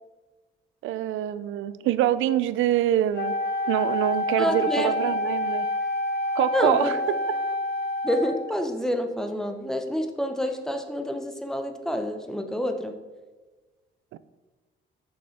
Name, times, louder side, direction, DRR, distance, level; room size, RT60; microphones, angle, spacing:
voice 1, 0.8-3.4 3.7-5.7 6.4-7.0 14.1-14.2, right 12 dB, 80° right, 15 dB, 0.4 m, -25 dB
Wind instrument woodwind instrument, 3.1-8.6, left 1 dB, 55° left, 0.6 m, -28 dB
voice 2, 4.4-4.9 6.5-7.0 8.0-13.0, equal, 5° left, 6 dB, 0.7 m, -28 dB
6.4 x 5.5 x 4.2 m, 1.3 s
cardioid pair, 90°, 20 cm